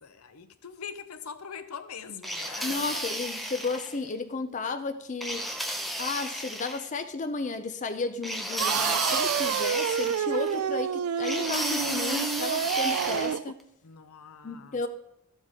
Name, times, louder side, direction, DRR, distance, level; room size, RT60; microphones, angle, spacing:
voice 1, 0.0-2.9 13.8-14.8, left 6 dB, 80° left, 0.7 m, -42 dB
sound 1, 2.2-4.0 5.2-6.8 8.2-10.6 11.2-13.4, equal, ahead, 0.7 m, -33 dB
voice 2, 2.6-5.5 6.0-13.6 14.4-14.9, left 3 dB, 35° left, 0.5 m, -33 dB
sound 2, 8.6-13.5, right 8 dB, 80° right, 0.3 m, -28 dB
13.5 x 7.4 x 3.6 m
head